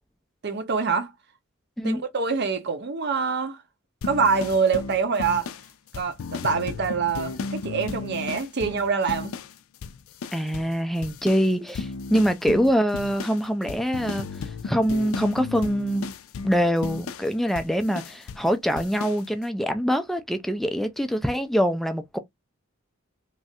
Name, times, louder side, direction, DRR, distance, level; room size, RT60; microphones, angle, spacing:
voice 1, 0.4-1.1 1.8-3.6 4.0-5.5 5.9-9.3, right 5 dB, 50° right, 0.6 m, -25 dB
sound 1, 4.0-9.6 9.8-10.8 11.0-18.5 18.8-19.2, left 4 dB, 75° left, 0.4 m, -35 dB
voice 2, 10.3-14.3 14.6-16.1 16.4-22.2, equal, ahead, 0.3 m, -24 dB
3.1 x 2.4 x 2.7 m
head